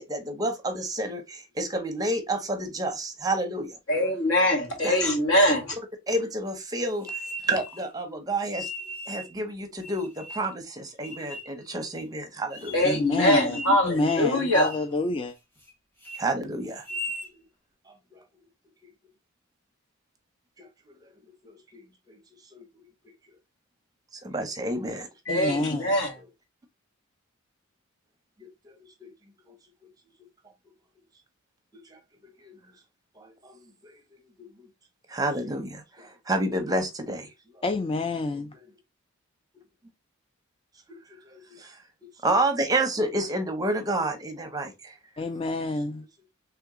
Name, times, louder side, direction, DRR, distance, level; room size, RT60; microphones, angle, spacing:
voice 1, 0.0-3.7 4.8-5.0 6.1-7.1 7.5-8.7 9.1-12.8 16.2-16.8 21.4-21.6 22.1-22.2 22.5-22.6 24.2-25.1 29.0-29.1 33.4-33.5 35.1-37.3 38.5-38.6 40.9-41.0 41.3-41.4 42.2-44.9, right 1 dB, 20° right, 0.6 m, -29 dB
voice 2, 3.9-5.8 12.7-14.7 25.3-26.2, left 1 dB, 75° left, 1.8 m, -23 dB
sound 1, 7.0-7.9 8.5-9.3 9.8-10.6 11.0-11.5 12.0-12.1 12.5-13.0 13.3-13.8 14.0-14.3 14.6-14.9 15.3-15.7 16.0-16.2 16.7-17.3, equal, 10° left, 1.1 m, -38 dB
voice 3, 12.8-15.3 25.3-25.9 37.6-38.5 45.2-46.1, left 2 dB, 25° left, 0.3 m, -28 dB
3.4 x 2.8 x 3.5 m
head